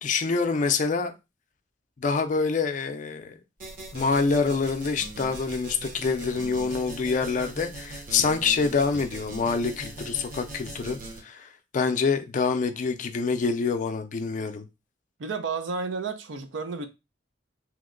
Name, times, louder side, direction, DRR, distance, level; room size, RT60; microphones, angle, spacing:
voice 1, 0.0-1.1 2.0-3.4 3.9-14.7, left 4 dB, 45° left, 0.4 m, -26 dB
sound 1, 3.6-11.2, right 2 dB, 50° right, 0.8 m, -40 dB
voice 2, 15.2-16.9, right 4 dB, 85° right, 0.5 m, -31 dB
2.9 x 2.1 x 3.7 m
head